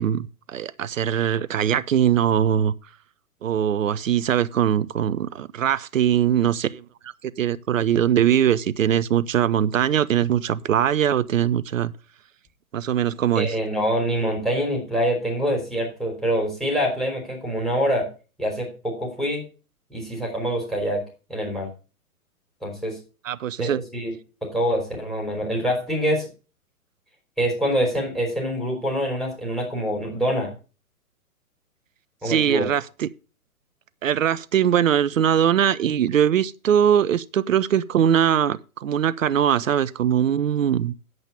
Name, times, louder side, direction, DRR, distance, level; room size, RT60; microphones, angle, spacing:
voice 1, 0.0-2.7 3.4-6.8 7.4-11.9 12.7-13.5 23.2-23.8 32.2-33.1 34.0-40.9, right 9 dB, 60° right, 0.8 m, -21 dB
voice 2, 13.4-18.1 18.4-19.4 19.9-21.0 21.3-21.7 22.6-23.0 23.6-24.1 24.4-26.3 27.4-30.5 32.2-32.7, equal, ahead, 3.6 m, -25 dB
9.2 x 8.0 x 5.5 m
figure-of-eight pair, 130°, 45 cm